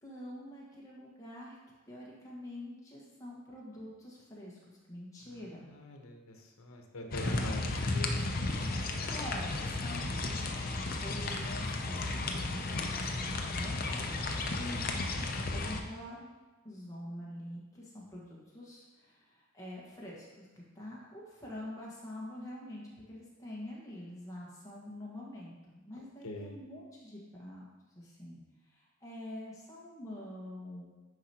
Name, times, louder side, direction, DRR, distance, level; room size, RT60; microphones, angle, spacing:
voice 1, 0.0-1.6 1.9-5.7 7.2-7.4 8.8-10.6 11.0-14.3 15.3-16.3 16.6-20.5 20.7-27.7 27.9-28.4 28.6-31.0, left 1 dB, 15° left, -5 dB, 1.5 m, -46 dB
voice 2, 5.3-8.9 14.5-15.3 26.2-26.6, left 1 dB, 85° left, 3 dB, 1.0 m, -44 dB
sound 1, 7.1-15.8, left 2 dB, 45° left, 0.6 m, -34 dB
9.6 x 4.9 x 2.9 m, 1.2 s
head